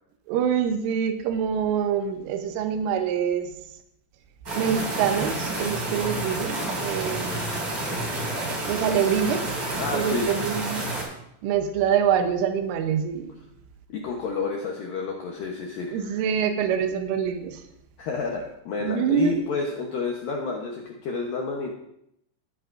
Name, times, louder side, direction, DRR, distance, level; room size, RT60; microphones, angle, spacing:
voice 1, 0.3-3.6 4.6-7.7 8.7-9.5 9.9-10.8 11.4-13.4 15.9-17.6 18.8-19.4, right 8 dB, 85° right, 7 dB, 3.5 m, -25 dB
sound 1, 4.5-11.0, right 2 dB, 30° right, 3.3 m, -29 dB
voice 2, 9.8-10.3 13.9-16.2 18.0-21.7, left 4 dB, 75° left, 0 dB, 2.0 m, -30 dB
18.0 x 9.3 x 2.6 m, 0.77 s
omnidirectional pair, 5.5 m